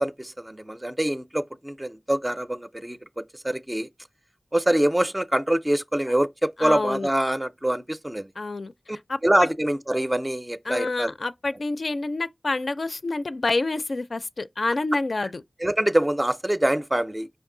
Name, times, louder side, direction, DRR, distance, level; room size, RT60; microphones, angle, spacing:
voice 1, 0.0-3.9 4.5-8.3 8.9-9.0 9.2-11.1 15.6-17.3, right 1 dB, 20° right, 0.4 m, -25 dB
voice 2, 6.6-7.1 8.4-8.7 9.1-9.2 10.7-15.4, left 2 dB, 75° left, 0.4 m, -27 dB
5.3 x 2.5 x 3.7 m
wide cardioid pair, 70°, 0 cm